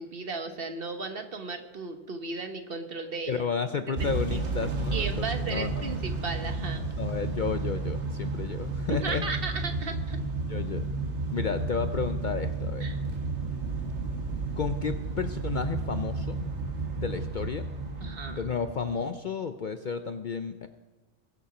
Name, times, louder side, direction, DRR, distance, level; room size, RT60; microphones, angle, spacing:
voice 1, 0.0-3.4 4.0-4.1 4.9-6.9 8.9-10.2 12.8-13.0 18.0-18.4, right 3 dB, 50° right, 6 dB, 1.2 m, -35 dB
voice 2, 3.3-6.0 7.0-9.2 10.4-10.8 11.3-12.9 14.6-16.4 17.0-17.7 18.0-20.7, left 6 dB, 55° left, 9 dB, 0.6 m, -32 dB
Motor vehicle (road) / Engine starting / Accelerating revving vroom, 4.0-18.9, right 3 dB, 65° right, 1.7 m, -32 dB
sound 1, 10.1-18.8, equal, 20° right, 4.8 m, -53 dB
21.5 x 7.2 x 4.9 m, 1.3 s
omnidirectional pair, 1.2 m